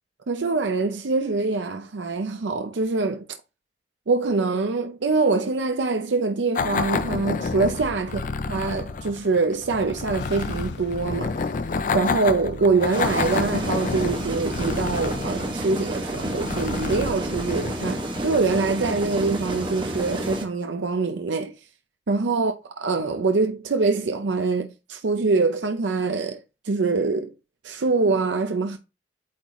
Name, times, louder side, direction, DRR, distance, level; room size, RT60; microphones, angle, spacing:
voice 1, 0.3-3.3 4.1-8.2 8.5-11.4 11.9-21.5 22.1-27.3 27.6-28.8, right 3 dB, 85° right, 0.6 m, -24 dB
sound 1, 6.5-18.7, left 4 dB, 45° left, 0.5 m, -29 dB
sound 2, 10.2-17.2, left 2 dB, 75° left, 1.0 m, -45 dB
sound 3, 12.9-20.4, right 1 dB, 25° right, 1.1 m, -30 dB
8.6 x 4.0 x 3.1 m
head